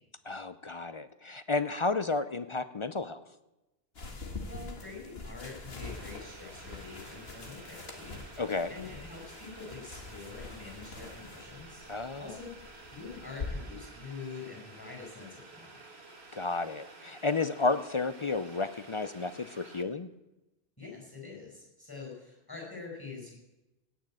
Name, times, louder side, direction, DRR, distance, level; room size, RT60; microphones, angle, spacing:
voice 1, 0.3-3.2 8.4-8.7 11.9-12.3 16.3-20.1, left 3 dB, 45° left, 12 dB, 0.4 m, -32 dB
sound 1, 3.9-13.5, left 3 dB, 65° left, 2.0 m, -45 dB
voice 2, 4.5-11.9 12.2-15.8 20.8-23.4, left 4 dB, 20° left, -1 dB, 5.2 m, -45 dB
Boiling, 5.8-19.8, right 3 dB, 70° right, 2.0 m, -52 dB
17.0 x 6.4 x 8.7 m, 0.99 s
omnidirectional pair, 1.1 m